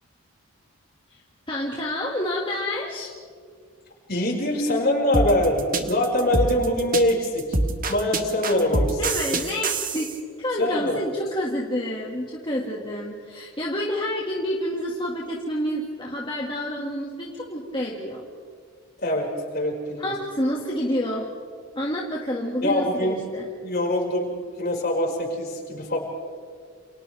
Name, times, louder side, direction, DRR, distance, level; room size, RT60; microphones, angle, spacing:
voice 1, 1.5-3.1 9.0-18.2 20.0-21.3 21.7-23.4, equal, 25° left, -3 dB, 2.1 m, -28 dB
voice 2, 4.1-7.6 7.9-9.0 10.6-11.0 19.0-20.1 22.6-23.2 23.6-24.3 24.6-26.0, left 1 dB, 45° left, -1 dB, 5.6 m, -23 dB
sound 1, 5.1-10.2, right 3 dB, 40° right, 1.6 m, -25 dB
29.5 x 29.0 x 3.5 m, 2.1 s
head